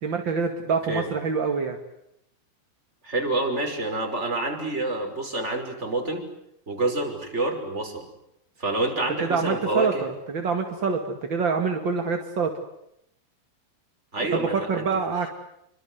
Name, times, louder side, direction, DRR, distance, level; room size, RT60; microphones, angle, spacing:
voice 1, 0.0-1.8 9.2-12.5 14.7-15.3, right 5 dB, 40° right, 4 dB, 1.7 m, -26 dB
voice 2, 3.0-6.2 6.7-8.1 8.6-10.0 14.1-15.0, right 2 dB, 15° right, 3 dB, 5.7 m, -27 dB
28.5 x 25.0 x 8.1 m, 0.78 s
omnidirectional pair, 5.1 m